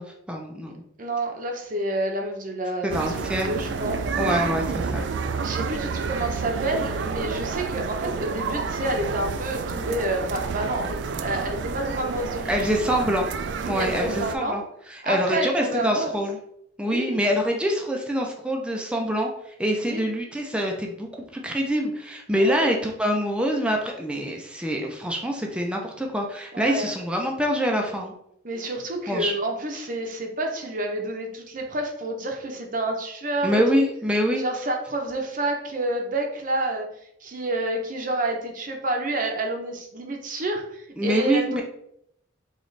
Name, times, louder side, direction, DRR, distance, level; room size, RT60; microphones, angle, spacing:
voice 1, 0.0-0.8 2.8-3.5 4.2-5.0 12.5-13.3 13.6-14.6 14.9-16.4 16.8-28.1 29.1-29.3 33.4-34.4 41.0-41.6, equal, 5° right, 1 dB, 0.4 m, -25 dB
voice 2, 1.0-4.4 5.4-13.0 13.7-14.6 15.0-16.1 16.8-17.2 19.9-20.0 22.3-22.7 26.5-26.9 28.4-33.6 34.4-36.9 37.2-41.6, right 1 dB, 45° right, 2 dB, 0.7 m, -29 dB
sound 1, 2.9-14.3, right 5 dB, 65° right, 0.3 m, -29 dB
3.9 x 3.0 x 3.2 m, 0.75 s
head